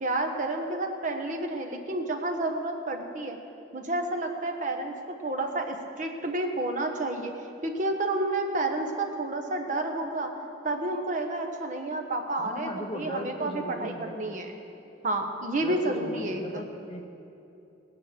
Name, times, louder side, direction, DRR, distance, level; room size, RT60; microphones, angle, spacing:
voice 1, 0.0-3.4 3.7-4.9 5.2-7.3 7.6-10.3 10.6-14.6 15.0-16.6, right 2 dB, 40° right, 4 dB, 1.2 m, -30 dB
voice 2, 12.4-14.2 15.6-17.0, left 1 dB, 30° left, 2 dB, 1.1 m, -37 dB
17.5 x 9.2 x 6.8 m, 2.8 s
head